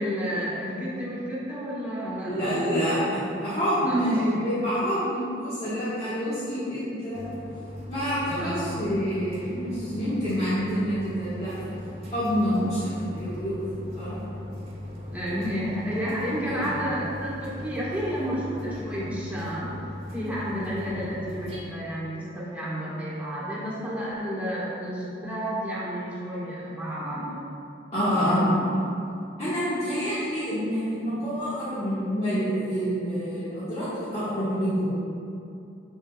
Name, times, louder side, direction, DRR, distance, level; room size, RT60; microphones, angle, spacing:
voice 1, 0.0-2.5 3.8-4.4 8.2-8.8 15.1-19.7 20.1-27.5 28.1-28.6, equal, 10° right, -8 dB, 1.4 m, -31 dB
voice 2, 2.3-7.3 7.9-11.5 12.1-14.2 15.3-15.4 16.4-16.8 27.1-27.2 27.9-28.4 29.4-34.9, equal, 35° left, -13 dB, 1.4 m, -27 dB
sound 1, 7.1-21.6, left 1 dB, 35° right, 1.1 m, -39 dB
7.1 x 6.5 x 2.3 m, 2.7 s
head